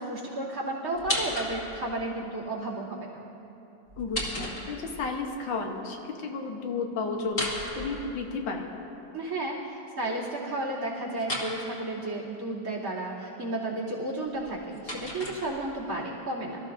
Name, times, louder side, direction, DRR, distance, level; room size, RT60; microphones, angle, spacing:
voice 1, 0.0-3.1 9.1-16.6, right 2 dB, 50° right, -4 dB, 3.2 m, -33 dB
sound 1, 0.9-1.9 3.9-5.1 7.2-8.6 11.2-11.5 14.3-15.9, left 1 dB, 50° left, 2.5 m, -34 dB
voice 2, 4.0-7.4 7.8-8.7, left 4 dB, 85° left, 2 dB, 1.9 m, -32 dB
24.5 x 14.0 x 2.6 m, 3.0 s
omnidirectional pair, 2.0 m